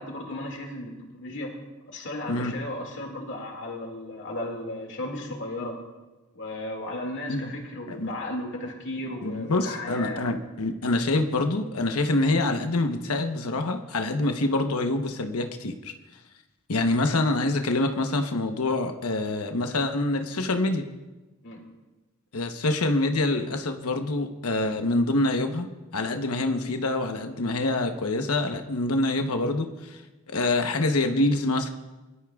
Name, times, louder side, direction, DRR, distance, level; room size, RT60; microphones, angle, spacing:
voice 1, 0.0-1.5 1.9-5.7 6.3-10.2 21.4-21.6, left 1 dB, 55° left, 1 dB, 2.2 m, -35 dB
voice 2, 9.2-15.9 16.7-20.8 22.3-25.7 25.9-30.0 30.3-31.7, left 2 dB, 90° left, 5 dB, 1.0 m, -26 dB
24.0 x 13.0 x 2.4 m, 1.1 s
head